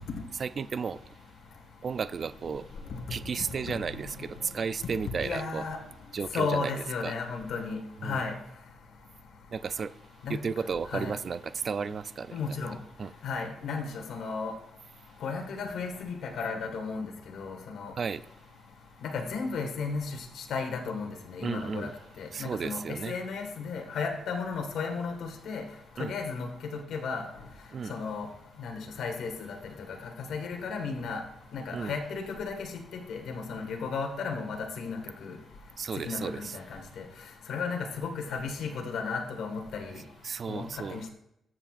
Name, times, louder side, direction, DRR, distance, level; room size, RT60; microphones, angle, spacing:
voice 1, 0.4-1.0 1.8-2.7 3.1-5.6 6.1-6.7 7.0-7.1 8.0-8.3 9.5-9.9 10.3-12.4 13.0-13.1 18.0-18.2 21.4-21.9 22.3-23.2 26.0-26.1 27.7-28.0 31.7-32.0 35.8-36.6 40.2-41.0, right 5 dB, 40° right, 15 dB, 0.3 m, -33 dB
voice 2, 5.2-5.8 6.3-8.3 10.2-10.4 10.9-11.1 12.3-12.7 13.2-14.5 15.2-17.1 17.3-17.9 19.0-20.2 20.5-21.9 22.2-22.8 23.0-25.6 26.0-26.5 26.9-27.2 27.9-28.3 28.6-29.5 30.3-31.2 31.5-32.5 33.1-35.4 36.0-36.8 37.5-40.0 40.5-40.7 40.9-41.1, left 5 dB, 75° left, 3 dB, 1.6 m, -34 dB
14.0 x 7.7 x 2.5 m, 0.85 s
wide cardioid pair, 170°, 0 cm